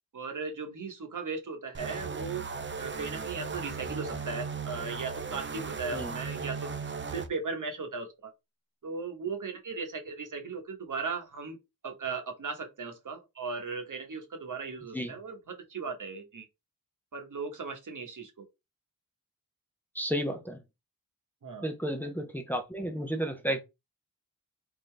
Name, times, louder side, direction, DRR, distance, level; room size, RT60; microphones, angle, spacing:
voice 1, 0.1-2.4 2.8-6.8 7.1-8.3 8.8-11.6 11.8-16.5 17.1-18.4 21.4-21.7, right 4 dB, 60° right, 1.2 m, -37 dB
sound 1, 1.7-7.3, right 5 dB, 30° right, 0.6 m, -37 dB
voice 2, 19.9-20.6 21.6-23.6, equal, 5° left, 0.8 m, -32 dB
3.9 x 3.7 x 3.3 m
wide cardioid pair, 90°, 36 cm